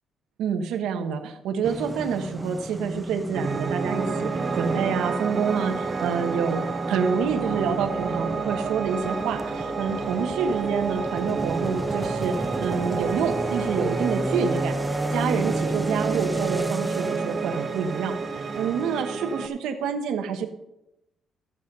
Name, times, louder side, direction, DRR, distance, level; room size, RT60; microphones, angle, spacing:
voice 1, 0.4-6.6 6.9-14.8 15.1-20.5, right 6 dB, 85° right, 5 dB, 1.3 m, -27 dB
sound 1, 1.6-19.0, equal, ahead, 0.3 m, -33 dB
Piano, 3.3-19.5, right 5 dB, 30° right, 0.9 m, -30 dB
sound 2, 7.2-16.7, left 7 dB, 60° left, 0.7 m, -44 dB
14.5 x 7.3 x 5.4 m, 0.89 s
cardioid pair, 165°, 0 cm